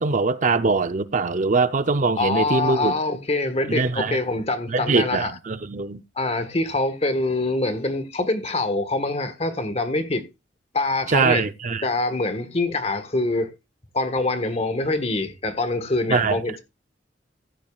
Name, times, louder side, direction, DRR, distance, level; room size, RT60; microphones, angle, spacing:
voice 1, 0.0-2.9 3.7-4.2 4.7-6.0 11.1-11.8 16.1-16.6, right 4 dB, 45° right, 0.6 m, -22 dB
voice 2, 2.2-5.3 6.2-10.2 10.7-11.4 11.8-13.5 13.9-16.6, left 2 dB, 35° left, 1.4 m, -24 dB
15.0 x 10.5 x 2.4 m
head